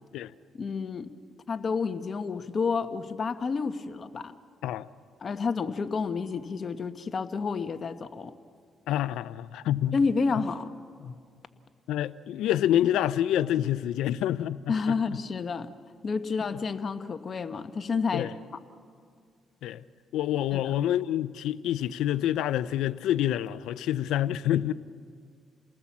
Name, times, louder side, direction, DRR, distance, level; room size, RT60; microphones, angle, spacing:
voice 1, 0.5-1.1 1.5-4.3 5.2-8.3 9.9-11.1 14.7-15.7 16.0-18.3 20.5-20.7, left 5 dB, 45° left, 1.2 m, -30 dB
voice 2, 8.9-10.0 11.9-14.9 18.1-18.3 19.6-19.8 20.1-24.7, left 12 dB, 85° left, 0.6 m, -27 dB
29.0 x 19.5 x 7.3 m
cardioid pair, 90°, 0 cm